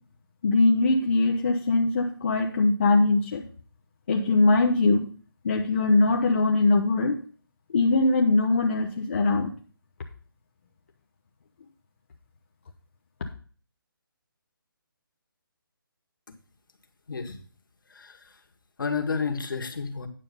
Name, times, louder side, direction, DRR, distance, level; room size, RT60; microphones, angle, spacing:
voice 1, 0.4-3.4 4.1-5.1 5.4-7.2 7.7-9.5, left 3 dB, 35° left, 2 dB, 0.8 m, -21 dB
voice 2, 17.9-18.4 18.8-20.1, left 5 dB, 65° left, 5 dB, 1.8 m, -31 dB
9.3 x 5.5 x 5.3 m, 0.41 s
hypercardioid pair, 170°, 12 cm